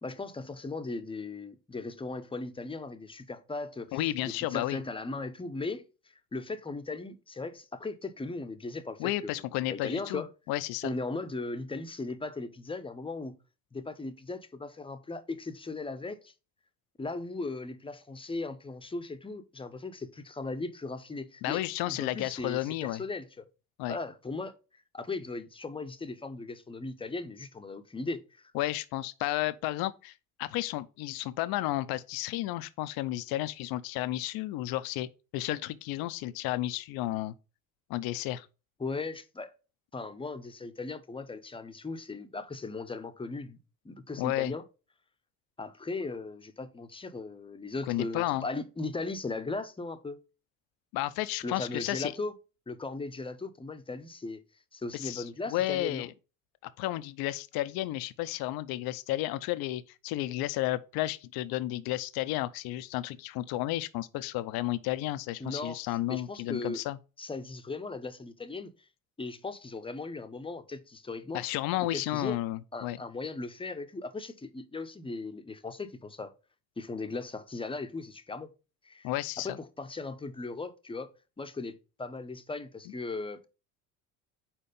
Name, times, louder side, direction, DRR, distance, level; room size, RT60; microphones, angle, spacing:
voice 1, 0.0-9.4 9.7-10.3 10.8-13.4 13.7-16.3 17.0-23.5 23.9-24.5 24.9-28.4 38.8-39.5 39.9-43.6 43.8-44.6 45.6-50.2 51.4-52.3 52.7-54.4 54.7-56.1 65.4-65.8 66.1-66.8 67.2-68.7 69.2-71.4 71.8-72.4 72.7-76.3 76.8-78.5 78.8-79.1 79.4-81.1 81.4-83.5, left 3 dB, 15° left, 0.7 m, -38 dB
voice 2, 3.9-4.8 9.0-10.9 21.4-23.0 23.8-24.0 28.5-30.1 30.4-37.3 37.9-38.5 44.2-44.5 47.9-48.5 50.9-52.1 54.9-55.2 55.5-56.1 56.8-67.0 71.3-73.0 79.0-79.6, left 15 dB, 60° left, 0.6 m, -32 dB
4.5 x 4.3 x 5.2 m
hypercardioid pair, 75°, 41 cm